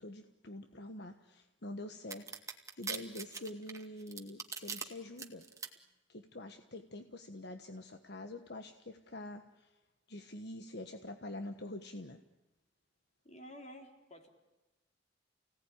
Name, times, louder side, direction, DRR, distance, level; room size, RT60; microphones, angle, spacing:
voice 1, 0.0-5.4 6.1-9.8 10.1-12.2, left 1 dB, 60° left, 7 dB, 1.4 m, -46 dB
sound 1, 2.1-4.8 5.2-5.7, right 5 dB, 15° right, 2.1 m, -41 dB
voice 2, 13.2-14.3, equal, 35° left, 4 dB, 3.9 m, -51 dB
29.5 x 18.0 x 10.0 m, 1.1 s
head